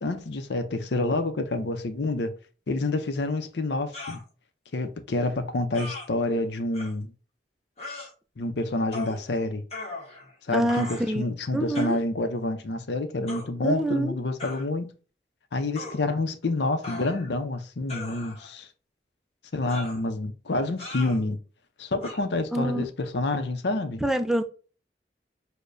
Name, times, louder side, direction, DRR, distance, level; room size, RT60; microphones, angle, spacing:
voice 1, 0.0-2.3 2.7-4.2 4.7-7.1 8.4-9.6 10.4-14.9 15.5-18.7 19.5-21.4 21.8-24.0, left 2 dB, 75° left, 0.6 m, -28 dB
sound 1, 3.9-4.2 5.7-6.1 6.7-6.9 7.8-8.1 8.9-9.2 9.7-10.3 10.7-11.1 11.7-12.0 13.3-13.5 14.4-14.7 15.7-16.0 16.8-17.4 17.9-18.5 19.7-20.0 20.8-21.2 22.0-22.2, left 3 dB, 35° left, 1.0 m, -38 dB
voice 2, 10.5-11.2 11.5-12.0 13.6-14.1 22.5-22.9 24.0-24.4, right 1 dB, 5° right, 0.3 m, -25 dB
6.5 x 2.2 x 2.6 m
head